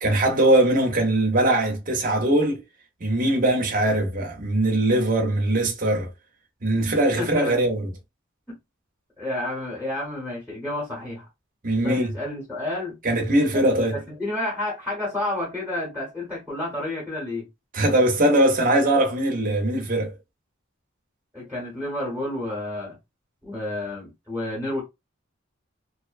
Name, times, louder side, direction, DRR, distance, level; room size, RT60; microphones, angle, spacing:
voice 1, 0.0-2.6 3.0-6.1 6.6-7.9 11.6-12.1 13.0-14.0 17.7-20.1, right 1 dB, 40° right, 0.7 m, -21 dB
voice 2, 7.2-7.7 9.2-11.3 11.8-12.9 13.5-17.5 21.3-23.0 23.4-24.8, left 1 dB, 5° right, 1.0 m, -30 dB
2.6 x 2.1 x 2.4 m
head